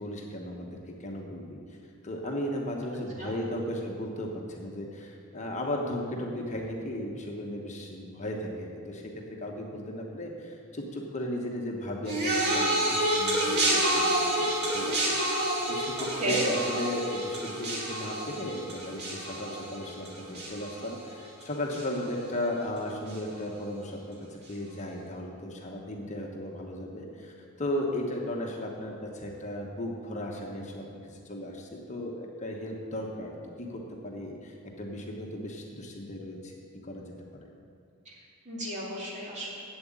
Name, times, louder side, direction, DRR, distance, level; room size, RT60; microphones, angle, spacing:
voice 1, 0.0-1.6 2.0-12.8 13.2-36.5 36.8-37.1, left 1 dB, 35° left, 0 dB, 1.2 m, -36 dB
sound 1, 12.1-21.4 21.7-22.2 23.1-23.2, right 1 dB, 50° right, 2.2 m, -29 dB
voice 2, 16.0-16.5 38.0-39.5, right 1 dB, 35° right, -4 dB, 2.6 m, -34 dB
8.1 x 7.9 x 8.7 m, 2.4 s
head